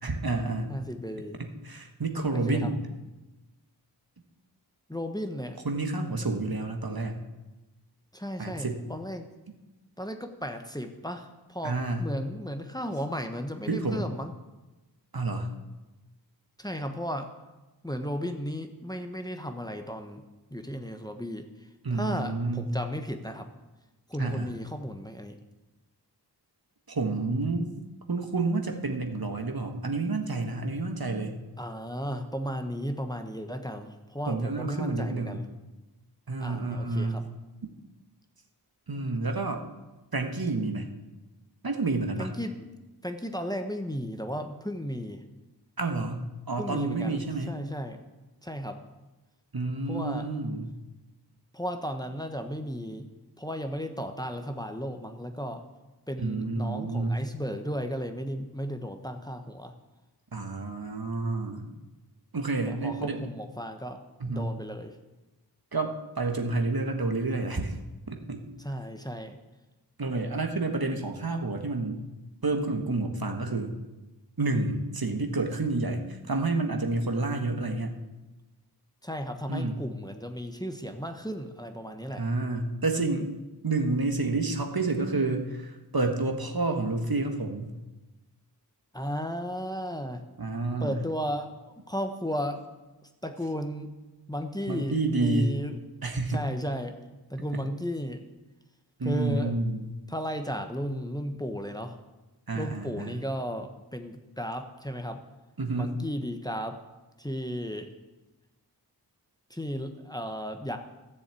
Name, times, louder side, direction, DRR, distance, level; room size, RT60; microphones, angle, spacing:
voice 1, 0.0-0.8 1.4-2.8 5.6-7.2 8.4-8.8 11.6-12.1 13.7-14.1 15.1-15.5 21.8-22.8 24.2-24.5 26.9-27.7 28.1-31.4 34.3-35.4 36.3-37.3 38.9-39.6 40.1-40.9 41.6-42.3 45.8-47.5 49.5-50.7 56.2-57.2 60.3-61.7 62.3-63.3 64.2-64.5 65.7-67.8 68.1-68.4 70.0-72.0 72.4-73.7 74.4-77.9 79.5-79.8 82.2-83.3 83.6-87.7 90.4-91.0 94.7-95.5 96.0-96.5 99.0-99.9 102.5-103.2 105.6-105.9, right 3 dB, 60° right, 4 dB, 1.6 m, -29 dB
voice 2, 0.7-1.4 2.3-2.7 4.9-5.6 8.1-9.3 10.0-14.3 16.6-17.3 17.8-20.2 20.5-21.5 21.9-23.5 24.1-25.3 31.6-35.5 36.4-37.3 42.2-45.2 46.6-47.2 47.5-48.0 48.4-48.8 49.9-50.3 51.5-53.1 53.4-55.6 56.1-59.7 62.7-64.9 68.6-69.4 79.0-82.2 88.9-90.2 90.8-92.6 93.2-93.9 94.3-95.8 96.3-97.0 97.3-98.3 99.0-99.6 100.1-102.0 102.5-105.2 105.8-106.8 107.2-107.9 109.5-110.8, equal, 10° left, 6 dB, 1.2 m, -34 dB
13.5 x 7.3 x 8.4 m, 1.1 s
wide cardioid pair, 45°, 41 cm